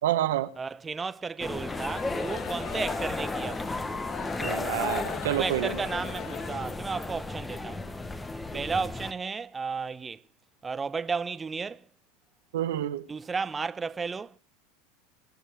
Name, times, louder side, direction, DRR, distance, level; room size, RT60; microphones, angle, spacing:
voice 1, 0.0-0.5 4.4-5.7 12.5-13.0, right 12 dB, 80° right, 1.1 m, -28 dB
voice 2, 0.6-3.9 5.3-7.9 8.5-10.2 10.6-11.9 13.1-14.4, right 5 dB, 20° right, 0.6 m, -33 dB
sound 1, 1.4-9.1, left 2 dB, 10° left, 1.0 m, -34 dB
sound 2, 1.7-6.8, left 8 dB, 40° left, 1.2 m, -39 dB
26.0 x 11.0 x 3.4 m
hypercardioid pair, 105°, 0 cm